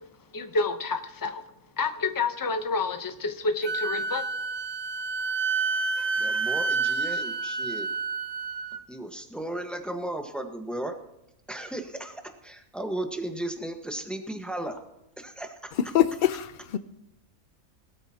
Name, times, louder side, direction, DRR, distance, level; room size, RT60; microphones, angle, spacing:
voice 1, 0.3-1.4 1.8-4.2, left 3 dB, 20° left, 0.7 m, -28 dB
Wind instrument woodwind instrument, 3.6-8.8, right 4 dB, 70° right, 1.2 m, -29 dB
voice 2, 6.2-7.9 8.9-10.9 11.5-14.8 15.2-15.7, right 1 dB, ahead, 1.2 m, -35 dB
voice 3, 15.9-16.8, left 11 dB, 65° left, 0.5 m, -24 dB
20.0 x 13.0 x 2.9 m
omnidirectional pair, 1.5 m